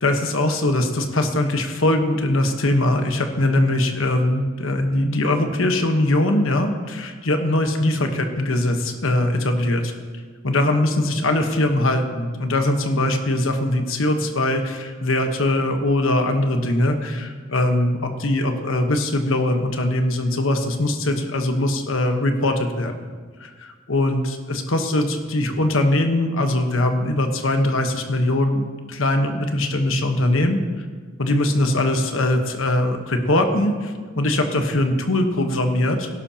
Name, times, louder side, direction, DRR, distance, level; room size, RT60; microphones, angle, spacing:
voice 1, 0.0-9.9 10.4-23.0 23.4-30.6 31.2-36.1, left 1 dB, 85° left, 5 dB, 1.2 m, -21 dB
17.5 x 11.0 x 2.9 m, 1.5 s
head